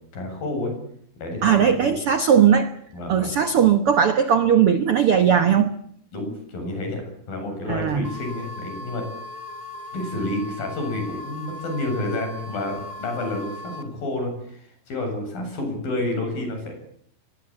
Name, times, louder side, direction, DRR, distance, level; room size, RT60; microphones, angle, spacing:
voice 1, 0.1-0.7 1.2-1.9 2.9-3.3 6.1-7.0 7.3-9.0 9.9-16.7, left 2 dB, 70° left, 4 dB, 9.4 m, -29 dB
voice 2, 1.4-2.7 3.1-5.7 7.7-8.1, right 8 dB, 65° right, 10 dB, 1.4 m, -18 dB
sound 1, 8.0-13.8, left 2 dB, 15° right, 1.8 m, -38 dB
23.5 x 21.0 x 8.8 m, 0.66 s
omnidirectional pair, 4.2 m